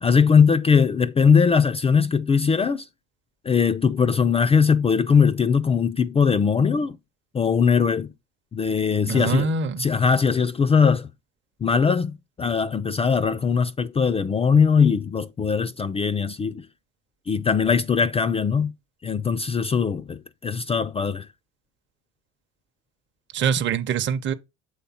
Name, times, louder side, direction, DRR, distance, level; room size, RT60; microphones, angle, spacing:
voice 1, 0.0-2.9 3.5-7.0 7.3-8.1 8.5-9.5 9.8-11.1 11.6-16.7 17.3-18.7 19.0-21.3, left 6 dB, 20° left, 0.4 m, -20 dB
voice 2, 9.1-9.9 23.3-24.3, right 6 dB, 35° right, 0.7 m, -24 dB
7.2 x 3.3 x 4.2 m
hypercardioid pair, 80°, 34 cm